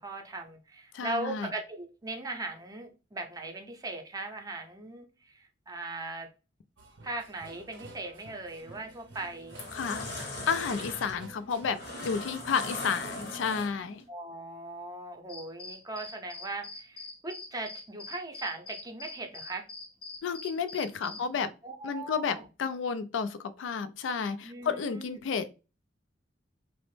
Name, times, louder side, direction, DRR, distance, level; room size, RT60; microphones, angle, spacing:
voice 1, 0.0-6.3 7.0-9.6 14.1-19.6 21.0-21.2 21.6-22.5 24.4-25.2, right 2 dB, 20° right, 0.5 m, -39 dB
voice 2, 0.9-1.5 9.7-14.0 20.2-21.5 21.8-25.6, left 6 dB, 85° left, 0.3 m, -32 dB
sound 1, 6.8-12.3, right 2 dB, 85° right, 0.6 m, -51 dB
sound 2, 8.6-8.9 9.3-14.0, left 2 dB, 60° left, 0.8 m, -39 dB
sound 3, 15.3-21.3, left 3 dB, 30° left, 0.7 m, -44 dB
3.0 x 2.0 x 3.1 m
head